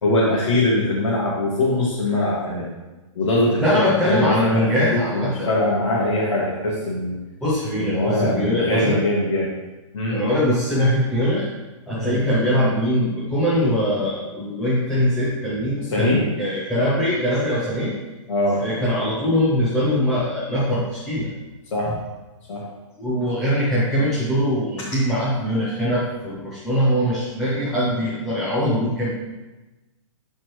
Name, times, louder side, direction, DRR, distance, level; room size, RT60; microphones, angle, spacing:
voice 1, 0.0-2.7 3.2-4.6 4.9-7.1 7.7-9.5 9.9-10.2 11.9-12.2 15.9-16.2 18.3-18.6 21.7-21.9 22.5-22.6, left 1 dB, 60° left, -7 dB, 2.2 m, -22 dB
voice 2, 3.6-5.5 7.4-9.0 10.1-11.5 11.9-17.9 18.6-21.3 21.9-22.0 23.0-29.1, equal, ahead, -10 dB, 0.5 m, -22 dB
11.5 x 4.6 x 3.2 m, 1.1 s
hypercardioid pair, 180°, 17 cm